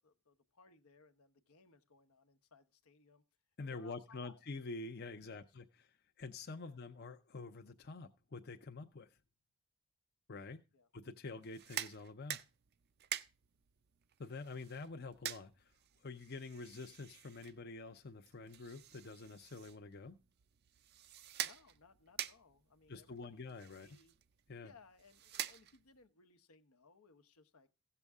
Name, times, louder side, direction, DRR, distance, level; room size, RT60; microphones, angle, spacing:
voice 1, 0.0-3.2 3.6-4.4 5.2-5.5 6.6-6.8 10.4-10.9 21.4-24.2 24.6-27.7, left 4 dB, 80° left, 1.0 m, -64 dB
voice 2, 3.6-5.6 6.2-9.2 10.3-10.6 10.9-12.4 14.2-15.7 16.0-20.2 22.9-23.9 24.5-24.7, left 3 dB, 45° left, 0.6 m, -47 dB
sound 1, 11.4-26.1, right 11 dB, 45° right, 0.5 m, -48 dB
16.0 x 6.8 x 3.5 m
head